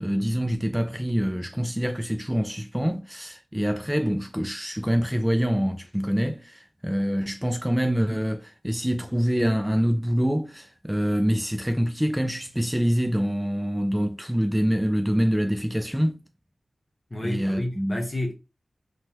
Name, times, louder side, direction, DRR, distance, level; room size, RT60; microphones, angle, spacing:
voice 1, 0.0-16.2 17.2-18.0, equal, 5° right, 0.3 m, -25 dB
voice 2, 17.1-18.3, left 1 dB, 40° left, 0.9 m, -30 dB
3.2 x 2.2 x 2.8 m
cardioid pair, 45°, 0 cm